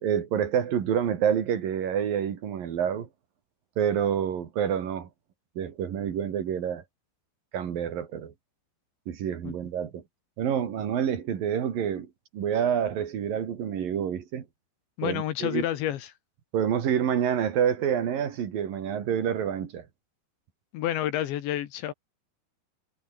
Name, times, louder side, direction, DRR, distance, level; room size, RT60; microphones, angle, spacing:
voice 1, 0.0-3.1 3.8-5.1 5.6-6.8 7.5-8.3 9.1-10.0 10.4-12.1 12.3-14.5 15.0-15.7 16.5-19.9, right 8 dB, 55° right, 3.8 m, -27 dB
voice 2, 15.0-16.1 20.7-21.9, left 12 dB, 80° left, 3.9 m, -29 dB
omnidirectional pair, 5.2 m